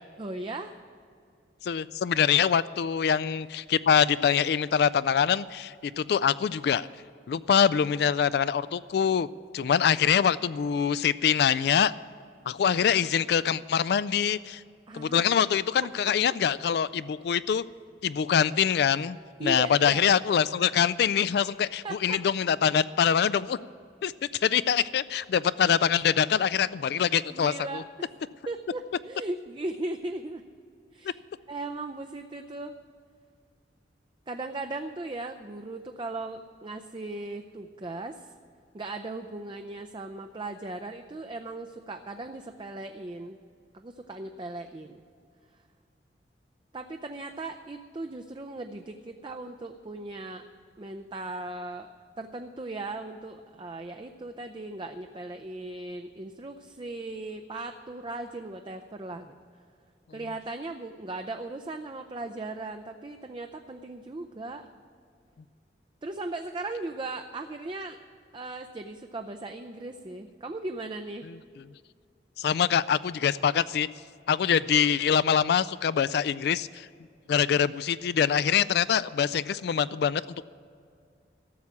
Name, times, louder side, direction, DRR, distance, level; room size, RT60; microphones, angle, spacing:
voice 1, 0.2-0.8 14.9-15.2 19.4-20.1 21.8-22.2 27.3-27.9 28.5-30.4 30.9-31.2 31.5-32.7 34.3-38.2 38.7-43.4 43.7-45.0 46.7-50.4 50.8-51.9 52.2-59.3 60.1-64.7 66.0-68.0 68.3-71.3, right 2 dB, 25° right, 6 dB, 0.5 m, -37 dB
voice 2, 1.6-6.9 7.3-9.3 9.5-11.9 12.5-14.6 14.9-17.6 18.0-23.6 24.0-24.1 24.4-27.8 71.3-71.4 72.4-73.9 74.3-76.9 77.3-80.2, left 8 dB, 60° left, 16 dB, 0.3 m, -24 dB
13.5 x 7.2 x 9.5 m, 2.3 s
head